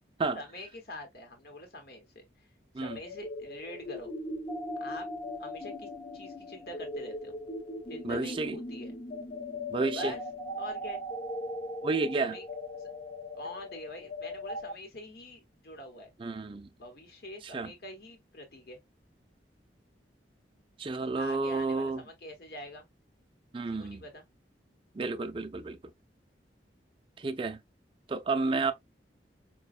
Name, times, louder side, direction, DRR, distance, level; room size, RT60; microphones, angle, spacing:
voice 1, 0.3-2.5 2.8-4.1 4.8-5.1 5.4-7.3 7.9-8.9 9.9-10.2 10.6-11.0 12.2-12.4 12.7-12.9 13.3-16.1 16.8-18.8 21.0-22.8 23.6-24.2, left 1 dB, 60° left, 1.0 m, -45 dB
sound 1, 2.8-14.7, left 1 dB, 30° left, 0.6 m, -39 dB
voice 2, 8.0-8.6 9.7-10.1 11.8-12.4 16.2-16.7 17.5-17.7 20.8-22.0 23.5-24.0 24.9-25.8 27.2-27.6 28.1-28.7, right 3 dB, 30° right, 0.4 m, -31 dB
4.9 x 2.2 x 2.4 m
head